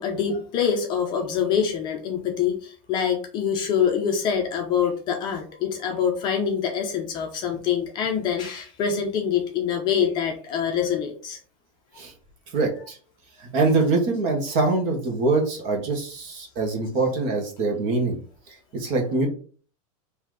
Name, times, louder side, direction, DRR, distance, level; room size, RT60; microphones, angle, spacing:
voice 1, 0.0-11.4, left 7 dB, 25° left, 2 dB, 0.6 m, -25 dB
voice 2, 12.5-13.0 13.4-18.2 18.5-19.3, right 3 dB, 40° right, 2 dB, 1.2 m, -24 dB
4.0 x 2.8 x 4.8 m, 0.41 s
supercardioid pair, 170°, 18 cm